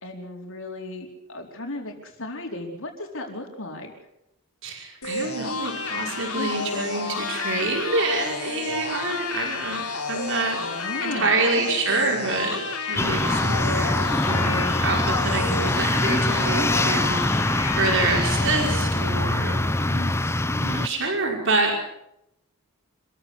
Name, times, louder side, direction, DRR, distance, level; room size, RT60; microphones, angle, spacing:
voice 1, 0.0-3.9 6.3-6.5 10.6-11.7 19.7-20.4, left 2 dB, 60° left, 3 dB, 4.5 m, -35 dB
voice 2, 4.6-12.6 12.9-17.4 17.8-19.6 20.5-21.8, right 3 dB, 60° right, 1 dB, 5.6 m, -27 dB
sound 1, 5.0-18.7, left 4 dB, 85° left, 4.4 m, -31 dB
sound 2, 7.1-11.2, left 4 dB, 40° left, 4.1 m, -42 dB
sound 3, 13.0-20.9, left 2 dB, 10° left, 0.8 m, -23 dB
27.0 x 15.0 x 8.4 m, 0.80 s
head